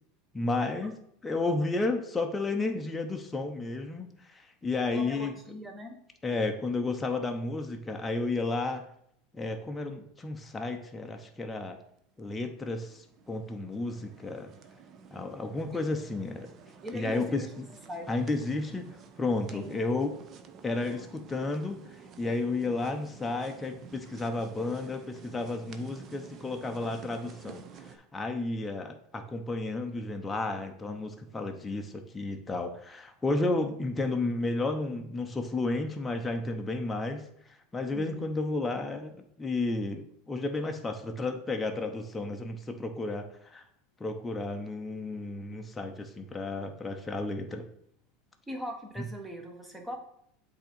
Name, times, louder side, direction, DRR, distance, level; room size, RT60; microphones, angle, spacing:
voice 1, 0.3-0.9 1.2-5.3 6.2-8.9 9.3-11.8 12.2-14.5 15.1-16.5 16.9-17.7 18.1-18.9 19.2-20.1 20.6-37.2 37.5-43.6 44.0-47.7, left 2 dB, 15° left, 4 dB, 0.7 m, -32 dB
voice 2, 4.9-6.0 15.7-15.8 16.8-17.5 17.9-18.1 19.5-19.8 37.9-38.3 48.5-50.0, equal, 10° right, 2 dB, 1.2 m, -40 dB
sound 1, 12.2-28.0, right 6 dB, 40° right, 0.6 m, -51 dB
7.8 x 2.8 x 4.4 m, 0.70 s
supercardioid pair, 105°, 0 cm